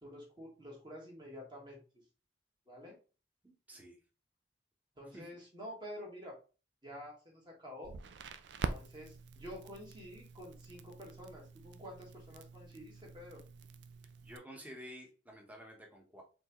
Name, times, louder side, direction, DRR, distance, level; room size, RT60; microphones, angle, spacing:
voice 1, 0.0-1.8 2.7-3.0 5.0-6.4 6.8-7.9 8.7-13.4, equal, 25° right, -2 dB, 1.7 m, -49 dB
voice 2, 3.4-4.0 5.1-5.2 14.2-16.2, equal, 10° right, 0 dB, 1.2 m, -51 dB
Crackle, 7.8-14.4, right 4 dB, 75° right, 0.4 m, -45 dB
4.4 x 3.5 x 3.1 m, 0.34 s
head